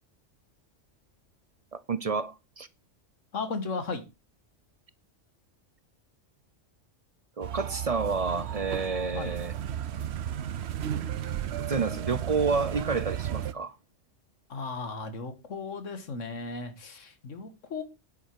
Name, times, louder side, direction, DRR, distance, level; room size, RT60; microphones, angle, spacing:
voice 1, 1.7-2.7 7.4-9.5 11.7-13.8, right 4 dB, 45° right, 0.5 m, -29 dB
voice 2, 3.3-4.0 9.1-9.4 14.5-17.8, left 4 dB, 80° left, 1.9 m, -35 dB
sound 1, 7.4-13.5, right 10 dB, 65° right, 0.9 m, -34 dB
9.6 x 8.1 x 4.6 m
omnidirectional pair, 1.3 m